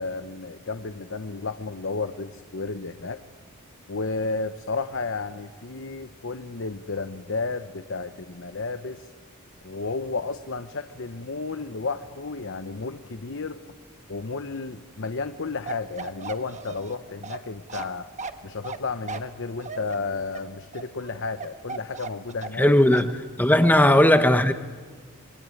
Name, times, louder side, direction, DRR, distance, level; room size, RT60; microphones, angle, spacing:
voice 1, 0.0-3.2 3.9-9.1 9.6-13.6 14.1-18.1 18.4-22.7 23.6-24.1, left 4 dB, 60° left, 0.9 m, -32 dB
Bark, 15.7-22.7 22.9-23.1, right 4 dB, 35° right, 1.2 m, -37 dB
voice 2, 22.6-23.1 23.4-24.5, left 1 dB, 10° left, 0.8 m, -17 dB
25.0 x 23.0 x 9.7 m
head